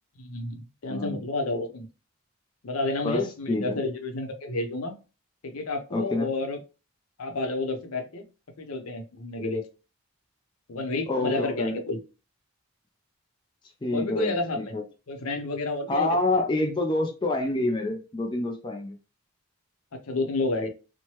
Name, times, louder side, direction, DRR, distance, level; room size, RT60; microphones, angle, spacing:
voice 1, 0.2-1.9 2.6-5.0 5.4-6.6 7.2-8.2 8.6-9.6 10.7-12.0 13.9-14.8 15.1-16.1 19.9-20.7, left 2 dB, 80° left, 5 dB, 0.7 m, -30 dB
voice 2, 0.9-1.2 3.0-3.8 5.9-6.3 11.1-11.8 13.8-14.8 15.9-19.0, left 2 dB, 20° left, 3 dB, 0.3 m, -27 dB
3.1 x 2.1 x 2.8 m, 0.31 s
head